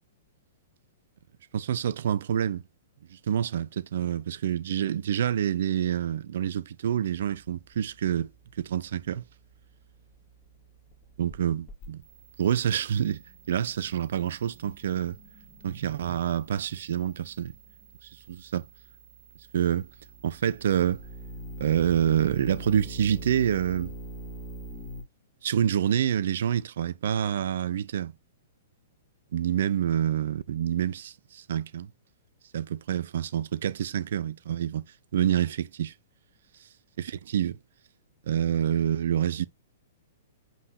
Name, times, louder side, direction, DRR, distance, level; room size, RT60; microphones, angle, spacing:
voice 1, 1.5-2.6 3.1-8.3 8.6-9.2 11.2-12.0 12.4-13.2 13.5-15.2 15.6-17.6 18.3-18.7 19.5-19.9 20.2-21.0 21.6-23.9 25.4-28.2 29.3-31.9 32.5-35.9 37.0-37.6 38.3-39.5, right 9 dB, 55° right, 0.6 m, -27 dB
sound 1, 7.1-25.0, right 1 dB, 30° left, 4.4 m, -46 dB
7.1 x 5.5 x 2.4 m
figure-of-eight pair, 110°, 0 cm